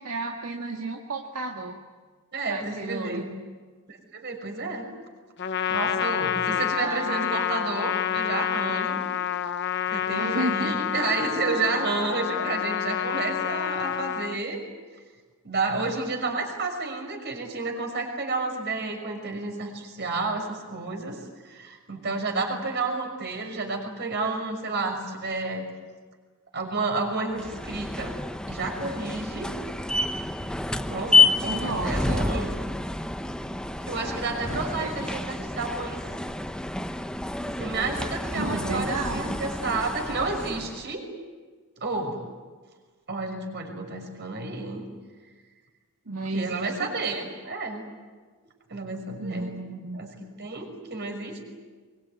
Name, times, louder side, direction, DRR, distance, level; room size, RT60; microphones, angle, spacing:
voice 1, 0.0-1.8 2.5-3.3 6.3-7.3 10.2-10.7 31.5-32.3 34.5-34.9 38.3-39.4 46.1-46.9 49.2-50.0, right 2 dB, 70° right, 1 dB, 1.9 m, -33 dB
voice 2, 2.3-3.2 3.9-4.9 5.7-9.0 9.9-14.6 15.4-25.7 26.5-28.1 28.5-29.5 30.9-32.5 33.9-36.0 37.5-41.1 41.8-42.2 43.1-44.9 46.3-47.8 48.7-49.5 49.9-50.1 50.4-51.4, right 3 dB, 50° right, 3 dB, 6.1 m, -30 dB
Trumpet, 5.4-14.4, left 9 dB, 50° left, 0.8 m, -28 dB
sound 1, 27.3-40.9, left 3 dB, 5° left, 0.8 m, -28 dB
24.0 x 23.5 x 9.6 m, 1.4 s
head